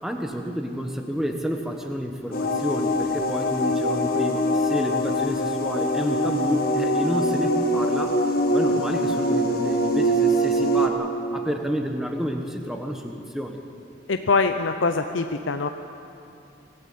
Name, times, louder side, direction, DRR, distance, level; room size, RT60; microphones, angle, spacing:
voice 1, 0.0-8.2 8.5-13.6, equal, ahead, 3 dB, 1.3 m, -30 dB
sound 1, 2.3-10.9, equal, 50° left, 1.8 m, -23 dB
voice 2, 14.1-15.7, left 4 dB, 80° left, 7 dB, 0.8 m, -23 dB
25.0 x 15.0 x 8.6 m, 2.7 s
head